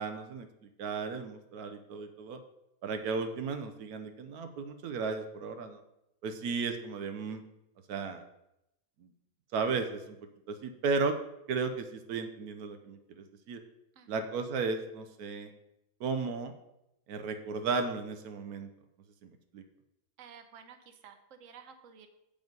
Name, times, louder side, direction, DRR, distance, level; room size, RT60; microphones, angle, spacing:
voice 1, 0.0-2.4 2.8-5.8 6.2-7.4 7.9-8.2 9.0-9.1 9.5-10.2 10.5-11.2 11.5-13.6 14.1-15.5 16.0-16.5 17.1-18.7 19.2-19.6, right 4 dB, 85° right, 7 dB, 1.2 m, -35 dB
voice 2, 20.2-22.1, right 7 dB, 65° right, 7 dB, 1.1 m, -52 dB
7.7 x 5.3 x 5.3 m, 0.86 s
omnidirectional pair, 1.6 m